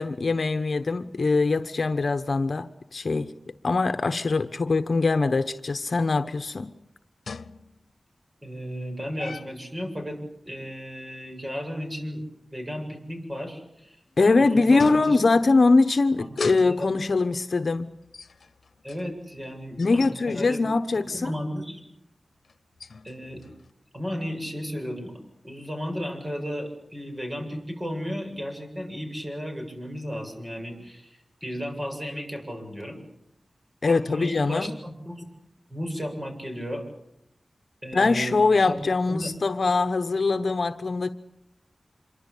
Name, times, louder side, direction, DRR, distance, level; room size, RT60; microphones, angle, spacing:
voice 1, 0.0-6.7 14.2-17.9 19.8-21.4 33.8-34.7 37.9-41.1, left 3 dB, 60° left, 9 dB, 1.1 m, -22 dB
sound 1, 6.5-6.6 7.3-7.9 9.2-9.7 13.8-14.2 14.8-15.5 16.2-17.0 18.0-20.2 20.6-20.9 22.4-23.7, left 4 dB, 85° left, 1.0 m, -41 dB
voice 2, 8.4-10.2 10.5-12.2 12.5-15.2 16.2-16.9 18.8-20.6 21.1-21.8 23.0-23.4 23.9-25.1 25.4-33.0 33.9-34.7 35.1-35.2 35.7-36.9 37.8-38.4 38.6-38.8 39.1-39.3, equal, 25° right, 4 dB, 7.7 m, -34 dB
27.0 x 24.0 x 8.5 m, 0.80 s
wide cardioid pair, 85°, 0 cm